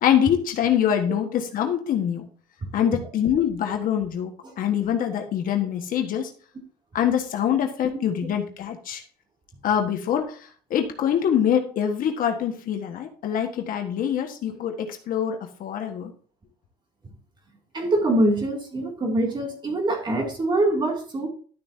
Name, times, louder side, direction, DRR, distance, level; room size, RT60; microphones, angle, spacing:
voice 1, 0.0-2.3 2.7-6.3 6.9-9.0 9.6-16.1, left 9 dB, 55° left, 5 dB, 1.5 m, -24 dB
voice 2, 17.7-21.3, right 1 dB, 25° right, 2 dB, 2.6 m, -24 dB
12.0 x 6.9 x 2.8 m, 0.43 s
cardioid pair, 125°, 18 cm